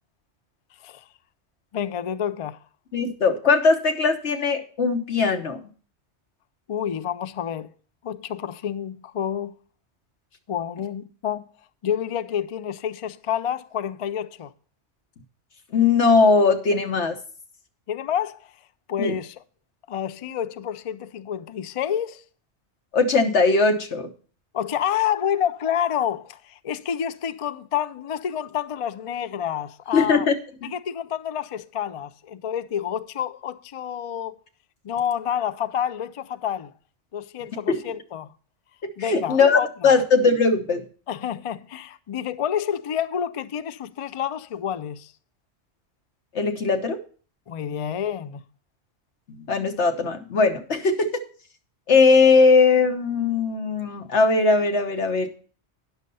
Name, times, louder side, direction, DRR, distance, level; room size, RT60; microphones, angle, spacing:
voice 1, 1.7-2.6 6.7-7.7 8.0-9.5 10.5-11.4 11.8-14.5 17.9-18.4 18.9-19.4 19.9-22.2 24.5-30.3 30.7-34.4 34.8-36.7 37.1-38.3 39.0-40.0 41.1-45.1 47.5-48.4, left 9 dB, 60° left, 0.3 m, -28 dB
voice 2, 2.9-5.6 15.7-17.2 19.0-19.1 22.9-24.1 29.9-30.3 37.7-37.8 39.0-40.8 46.3-47.0 49.3-51.1 51.9-55.3, left 4 dB, 80° left, 1.4 m, -19 dB
9.6 x 6.5 x 5.4 m
omnidirectional pair, 1.2 m